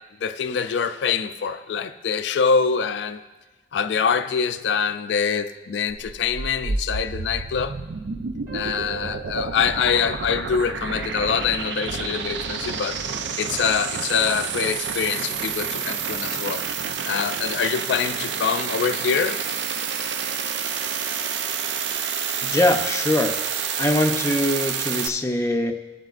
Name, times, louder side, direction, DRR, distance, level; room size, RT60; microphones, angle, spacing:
voice 1, 0.2-3.2 3.7-7.7 8.5-13.0 13.4-16.6 17.0-19.4, left 6 dB, 75° left, 9 dB, 0.4 m, -24 dB
sound 1, 5.9-25.1, right 6 dB, 75° right, 0.5 m, -29 dB
sound 2, 8.5-11.6, right 10 dB, 20° right, 2.0 m, -43 dB
voice 2, 22.4-23.3 23.8-25.7, left 1 dB, 15° left, 3 dB, 0.6 m, -22 dB
16.5 x 7.6 x 2.4 m, 1.2 s
head